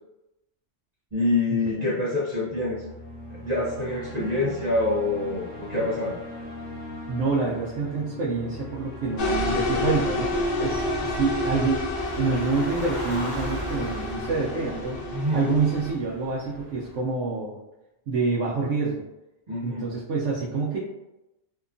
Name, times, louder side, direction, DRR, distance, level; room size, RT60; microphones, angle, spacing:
voice 1, 1.1-2.8 3.3-6.2 15.1-15.4 19.5-19.9, left 2 dB, 45° right, -8 dB, 0.6 m, -26 dB
sound 1, 2.4-16.6, left 1 dB, 75° left, 1.1 m, -40 dB
voice 2, 7.1-11.8 12.2-15.0 15.3-17.5 18.1-19.0 19.6-20.8, right 4 dB, 75° right, -6 dB, 0.9 m, -27 dB
sound 2, 9.2-15.9, left 1 dB, 60° left, 0.6 m, -29 dB
sound 3, 11.9-17.0, equal, 25° left, 0.6 m, -38 dB
2.8 x 2.2 x 2.5 m, 0.94 s
omnidirectional pair, 1.2 m